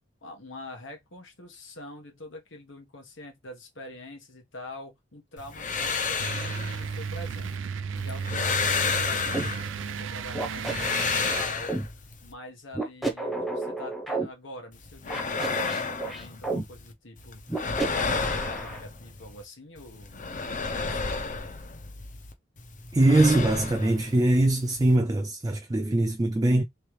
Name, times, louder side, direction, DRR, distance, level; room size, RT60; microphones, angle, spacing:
voice 1, 0.2-7.5 7.9-20.2 20.8-21.2, left 1 dB, 90° left, 1.4 m, -45 dB
sound 1, 5.4-7.6 8.0-10.0 10.4-12.3 14.7-16.9 17.2-19.4 19.8-22.3 22.6-25.0, left 5 dB, 45° left, 0.7 m, -32 dB
sound 2, 6.2-11.4, right 6 dB, 90° right, 0.4 m, -34 dB
sound 3, 9.3-9.5 10.4-11.9 12.7-14.3 15.1-16.6 17.5-18.8, right 2 dB, ahead, 0.8 m, -32 dB
voice 2, 22.9-26.6, right 1 dB, 20° right, 0.4 m, -22 dB
3.3 x 3.1 x 3.2 m
head